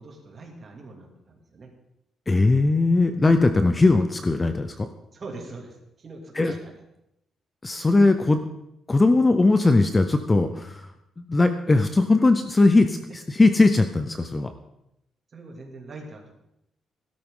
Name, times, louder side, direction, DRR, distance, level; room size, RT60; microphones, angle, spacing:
voice 1, 0.0-1.7 5.1-6.8 15.3-16.3, right 3 dB, 30° right, 1 dB, 2.5 m, -42 dB
voice 2, 2.3-4.9 6.4-6.5 7.6-8.4 8.9-10.9 11.2-12.9 13.4-14.5, left 3 dB, 15° left, 8 dB, 0.5 m, -19 dB
16.5 x 12.5 x 3.8 m, 0.83 s
cardioid pair, 180°, 0 cm